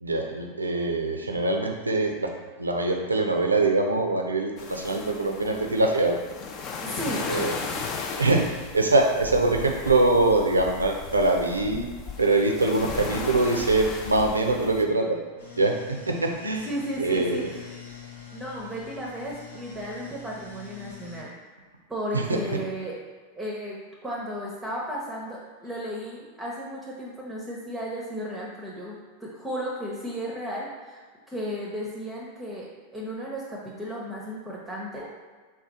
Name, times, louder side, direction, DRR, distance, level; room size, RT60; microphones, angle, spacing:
voice 1, 0.0-2.3 2.6-6.2 7.3-7.6 8.2-8.5 8.7-11.9 12.2-15.2 15.6-16.7 17.0-17.4 22.1-22.6, right 2 dB, 80° right, 2 dB, 0.5 m, -23 dB
sound 1, 4.6-14.8, left 5 dB, 35° left, 0.4 m, -36 dB
voice 2, 6.8-7.6 16.6-17.6 18.3-21.5 21.9-22.9 23.4-31.0 31.3-32.7 32.9-35.1, equal, 10° right, -5 dB, 0.7 m, -34 dB
sound 2, 15.4-21.2, left 8 dB, 65° left, 0.9 m, -45 dB
4.1 x 2.3 x 4.1 m, 1.5 s
figure-of-eight pair, 90°, 0 cm